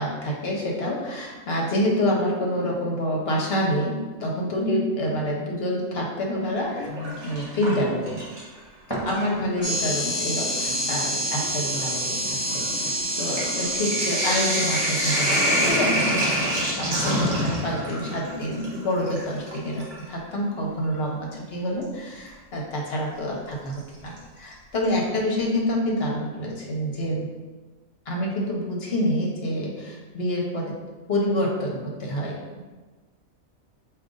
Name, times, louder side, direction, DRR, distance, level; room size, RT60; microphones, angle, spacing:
voice 1, 0.0-6.9 7.2-8.2 8.9-27.3 28.1-30.8 31.1-32.6, equal, 50° left, -2 dB, 1.0 m, -27 dB
Sink (filling or washing), 6.6-8.6 8.9-9.8 10.6-10.7 10.9-20.0 21.8-21.9 23.7-24.2 24.5-24.6 24.8-24.9, equal, 55° right, 1.4 m, -27 dB
sound 1, 8.9-18.9 19.5-19.6, right 2 dB, 25° right, 0.5 m, -40 dB
sound 2, 9.6-15.7, equal, 25° left, 0.8 m, -27 dB
5.0 x 2.6 x 3.7 m, 1.3 s
omnidirectional pair, 1.4 m